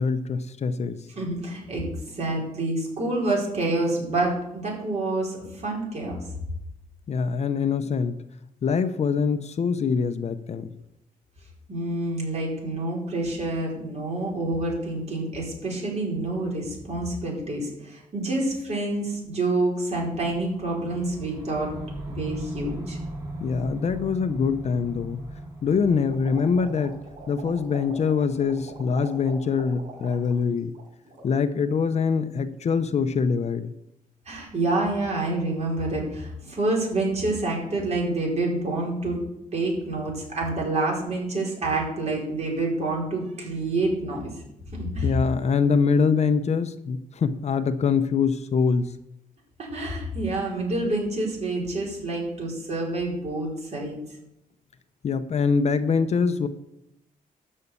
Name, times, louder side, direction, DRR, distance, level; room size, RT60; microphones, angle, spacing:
voice 1, 0.0-1.0 7.1-8.2 8.6-10.7 23.4-25.2 25.6-27.0 27.3-30.7 31.2-33.7 45.0-48.9 55.0-56.5, left 5 dB, 50° left, 11 dB, 0.7 m, -24 dB
voice 2, 1.2-6.2 11.7-21.7 22.1-23.0 34.3-39.2 39.5-44.2 44.7-45.1 49.6-54.0, right 2 dB, 50° right, -2 dB, 4.9 m, -27 dB
sound 1, 20.2-30.2, right 1 dB, 20° right, 5.2 m, -39 dB
sound 2, 26.1-30.4 30.7-31.2, right 2 dB, 65° right, 4.5 m, -44 dB
13.0 x 5.6 x 8.4 m, 0.83 s
cardioid pair, 130°, 15 cm